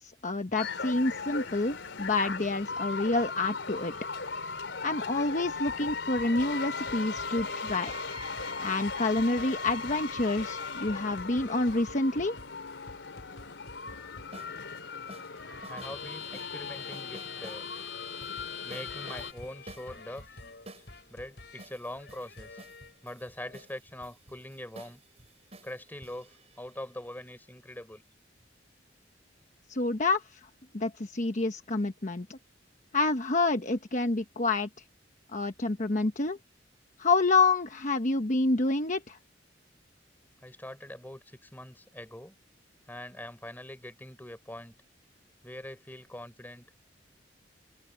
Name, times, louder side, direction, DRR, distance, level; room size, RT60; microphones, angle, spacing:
voice 1, 0.0-3.9 4.8-7.9 8.6-12.3 29.7-30.4 30.7-32.4 32.9-34.7 35.3-36.4 37.0-39.2, left 3 dB, 45° left, 1.1 m, -28 dB
sound 1, 0.6-19.3, left 4 dB, 85° left, 3.7 m, -38 dB
sound 2, 5.5-23.0 23.4-23.7, left 3 dB, 65° left, 6.2 m, -50 dB
sound 3, 13.9-14.5 15.1-15.9 16.2-17.6 18.2-18.4 18.7-20.9 21.6-27.2, right 2 dB, 35° right, 6.4 m, -51 dB
voice 2, 15.7-17.6 18.6-20.3 21.1-22.6 23.0-25.0 25.6-28.0 40.4-42.3 42.9-44.7 45.4-46.7, left 1 dB, 10° left, 3.9 m, -43 dB
open air
head